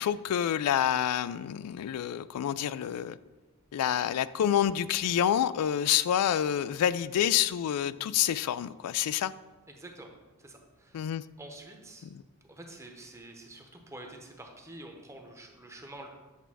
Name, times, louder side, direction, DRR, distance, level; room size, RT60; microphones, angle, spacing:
voice 1, 0.0-3.2 3.7-9.3 10.9-11.2 12.1-12.2, left 10 dB, 90° left, 17 dB, 0.3 m, -28 dB
voice 2, 9.7-10.1 10.4-11.1 11.4-12.1 12.5-16.1, right 1 dB, 15° right, 2 dB, 0.9 m, -47 dB
8.3 x 3.4 x 6.1 m, 1.2 s
head